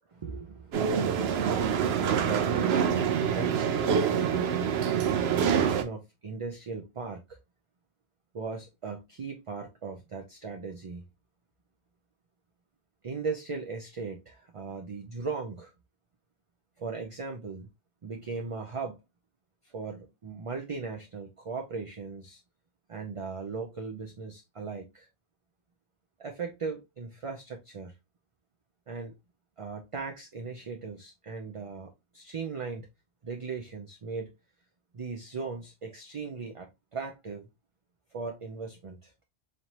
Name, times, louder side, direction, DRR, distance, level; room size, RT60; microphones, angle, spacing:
voice 1, 0.1-4.2 5.0-7.4 8.3-11.1 13.0-15.7 16.8-17.7 18.0-19.0 19.6-22.4 22.9-25.1 26.2-28.0 28.9-29.1 29.6-32.9 33.2-34.3 34.9-37.5 38.1-39.1, right 4 dB, 45° right, 0.4 m, -38 dB
sound 1, 0.7-5.8, right 7 dB, 75° right, 0.9 m, -26 dB
4.1 x 3.2 x 2.8 m
omnidirectional pair, 1.1 m